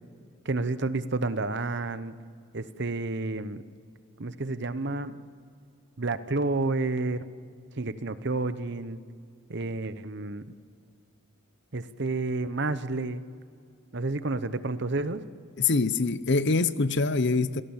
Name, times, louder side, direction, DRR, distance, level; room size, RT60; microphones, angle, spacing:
voice 1, 0.4-2.1 2.5-3.6 4.2-5.2 6.0-7.3 7.8-9.0 9.5-10.4 11.7-13.2 13.9-15.3, right 3 dB, 50° right, 0.9 m, -30 dB
voice 2, 15.6-17.6, left 3 dB, 50° left, 0.8 m, -24 dB
27.0 x 17.5 x 7.3 m
head